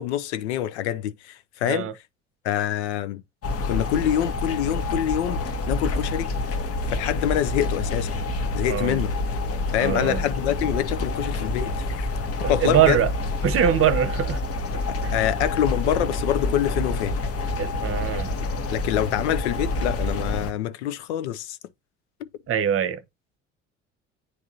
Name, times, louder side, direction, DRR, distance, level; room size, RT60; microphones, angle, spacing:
voice 1, 0.0-1.9 2.4-3.2 3.7-5.4 5.7-6.3 6.9-8.2 8.5-9.1 9.7-12.1 12.5-13.0 14.9-17.2 18.7-21.6 22.2-22.3, left 11 dB, 70° left, 0.6 m, -26 dB
sound 1, 3.4-20.5, left 2 dB, 40° left, 1.1 m, -28 dB
voice 2, 8.7-9.0 9.8-10.2 12.4-13.1 13.4-14.4 17.6-18.3 22.5-23.0, right 9 dB, 40° right, 0.9 m, -22 dB
9.5 x 3.6 x 2.7 m
figure-of-eight pair, 55°, 35 cm